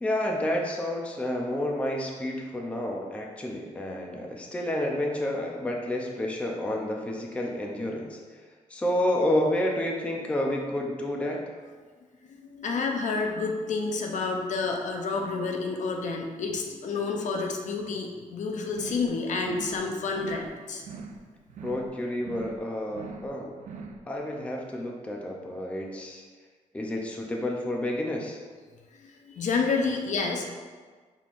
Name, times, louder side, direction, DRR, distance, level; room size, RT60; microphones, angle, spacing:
voice 1, 0.0-8.2 8.7-11.4 21.6-23.5 24.1-26.2 26.7-28.4, left 1 dB, 10° left, 0 dB, 0.4 m, -30 dB
voice 2, 12.3-20.8 29.0-30.5, left 4 dB, 65° left, 2 dB, 0.6 m, -29 dB
sound 1, 18.7-19.1 19.4-19.8 20.1-20.5 20.8-21.2 21.5-21.9 22.2-22.6 22.9-23.3 23.6-24.0, right 4 dB, 65° right, 0.4 m, -42 dB
5.9 x 3.7 x 2.4 m, 1.5 s
wide cardioid pair, 165°, 13 cm